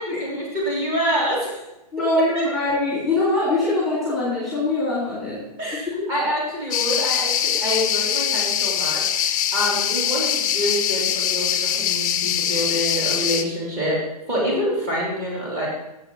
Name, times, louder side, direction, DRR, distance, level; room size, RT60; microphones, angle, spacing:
voice 1, 0.0-1.6 2.3-2.4 5.6-14.0 14.3-15.7, equal, 25° right, -5 dB, 3.2 m, -26 dB
voice 2, 1.9-5.4, left 2 dB, ahead, -9 dB, 2.4 m, -22 dB
sound 1, 6.7-13.4, left 9 dB, 30° left, 0.6 m, -23 dB
7.3 x 5.8 x 7.3 m, 0.92 s
hypercardioid pair, 170°, 21 cm